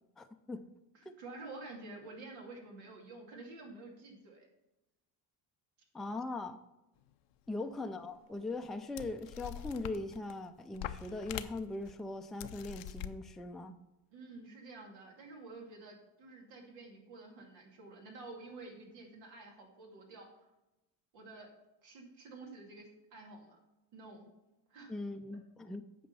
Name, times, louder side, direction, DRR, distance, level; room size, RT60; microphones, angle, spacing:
voice 1, 0.2-0.6 5.9-6.6 7.5-13.8 24.9-25.8, left 2 dB, ahead, 5 dB, 0.4 m, -40 dB
voice 2, 0.9-4.5 7.6-7.7 14.1-20.3 21.1-21.5 21.8-23.6 23.9-24.3 24.7-24.9, right 3 dB, 90° right, 0 dB, 2.5 m, -50 dB
sound 1, 7.8-7.9 8.6-8.7 9.0-10.4 10.7-11.9 12.4-13.1, left 12 dB, 85° left, 0.7 m, -43 dB
8.7 x 5.2 x 5.5 m, 0.96 s
cardioid pair, 110°, 43 cm